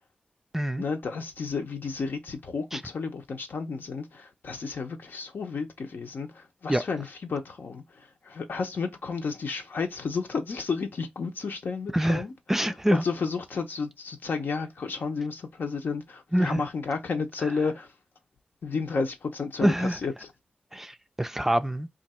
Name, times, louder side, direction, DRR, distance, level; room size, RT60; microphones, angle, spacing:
voice 1, 0.8-7.8 8.2-12.3 12.9-17.9 18.6-20.3, left 4 dB, 80° left, 0.8 m, -32 dB
voice 2, 12.5-13.0 16.3-16.6 17.4-17.5 19.6-20.0 20.7-21.9, right 1 dB, 10° right, 0.3 m, -25 dB
2.8 x 2.6 x 4.2 m
wide cardioid pair, 105°, 3 cm